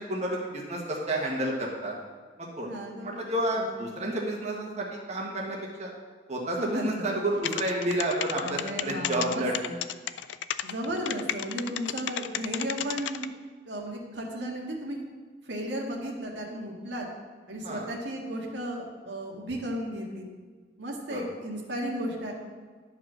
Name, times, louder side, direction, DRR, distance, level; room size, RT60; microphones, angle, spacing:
voice 1, 0.0-1.9 2.4-2.7 3.0-5.9 6.3-9.5 17.6-17.9 21.1-21.2, right 1 dB, 40° right, -2 dB, 1.4 m, -30 dB
voice 2, 2.6-3.2 3.5-3.9 6.6-7.1 8.4-9.8 10.6-13.3 13.7-15.0 15.4-17.1 17.5-20.3 20.8-22.3, right 1 dB, 80° right, -1 dB, 1.8 m, -35 dB
sound 1, 7.4-13.3, left 10 dB, 85° left, 0.4 m, -31 dB
11.0 x 5.0 x 6.2 m, 1.5 s
head